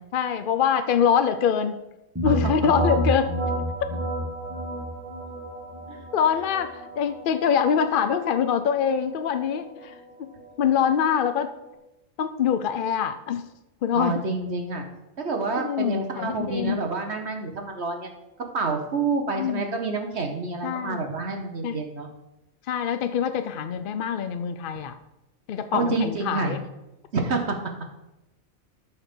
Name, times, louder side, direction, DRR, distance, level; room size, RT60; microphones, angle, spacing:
voice 1, 0.1-1.8 2.2-3.3 6.1-10.3 10.6-11.5 12.2-13.4 13.8-14.2 15.6-16.8 19.3-19.7 20.6-21.0 21.6-21.8 22.7-24.9 25.5-26.6, left 7 dB, 60° left, 9 dB, 0.6 m, -24 dB
sound 1, 2.1-11.7, equal, 10° right, 2.1 m, -31 dB
voice 2, 13.9-14.8 15.2-18.1 18.5-22.1 25.7-26.6 27.1-27.6, right 3 dB, 55° right, 4 dB, 1.3 m, -28 dB
13.0 x 4.4 x 6.8 m, 0.96 s
omnidirectional pair, 1.4 m